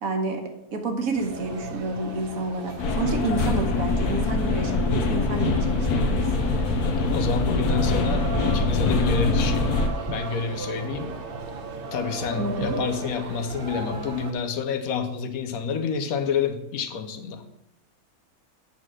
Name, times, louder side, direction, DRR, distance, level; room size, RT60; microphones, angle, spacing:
voice 1, 0.0-6.4 12.4-12.8, right 3 dB, 65° right, 5 dB, 1.5 m, -29 dB
sound 1, 1.1-14.3, right 3 dB, 45° right, 0.8 m, -36 dB
sound 2, 2.8-9.9, left 3 dB, 90° left, 1.3 m, -24 dB
voice 2, 7.1-9.7 10.1-11.1 11.9-17.4, left 6 dB, 70° left, 8 dB, 1.2 m, -28 dB
8.6 x 4.2 x 6.2 m, 0.84 s
omnidirectional pair, 1.6 m